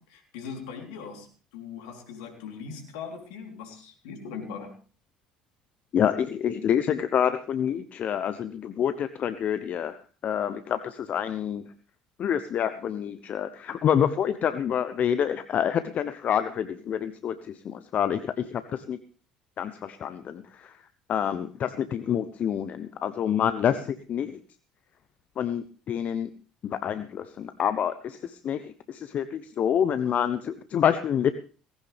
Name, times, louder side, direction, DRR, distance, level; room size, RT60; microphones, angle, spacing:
voice 1, 0.0-4.8, left 6 dB, 70° left, 4 dB, 3.6 m, -40 dB
voice 2, 5.9-9.9 10.2-11.6 12.2-19.0 19.6-20.7 21.1-24.4 25.4-26.3 26.6-31.3, left 9 dB, 50° left, 12 dB, 0.9 m, -27 dB
18.5 x 16.5 x 3.5 m, 0.38 s
hypercardioid pair, 60°, 3 cm